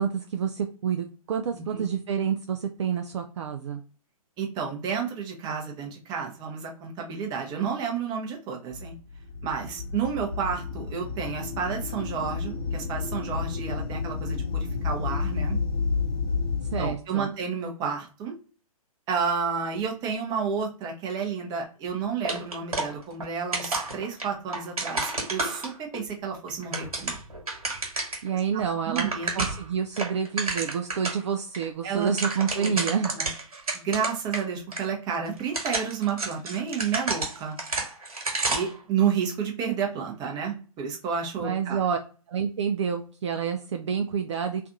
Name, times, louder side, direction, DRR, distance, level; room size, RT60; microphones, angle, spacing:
voice 1, 0.0-3.8 16.7-17.3 28.2-29.1 29.3-33.1 41.4-42.0 42.3-44.7, right 7 dB, 50° right, 5 dB, 0.4 m, -28 dB
voice 2, 1.5-1.9 4.4-8.9 9.4-15.6 16.8-18.4 19.1-27.2 28.9-29.4 31.8-32.1 32.6-32.9 33.1-33.3 33.7-37.6 38.5-41.8, right 6 dB, 20° right, 1 dB, 0.8 m, -31 dB
sound 1, 8.7-16.9, left 5 dB, 40° left, 0.8 m, -31 dB
sound 2, 22.2-23.3 23.5-26.0 26.5-28.3 28.6-28.7 28.9-29.7 30.0-31.2 31.5-31.6 31.9-34.4 34.7-34.8 35.4-38.8, right 2 dB, 75° right, 1.3 m, -30 dB
3.3 x 2.4 x 2.6 m, 0.37 s
figure-of-eight pair, 125°, 19 cm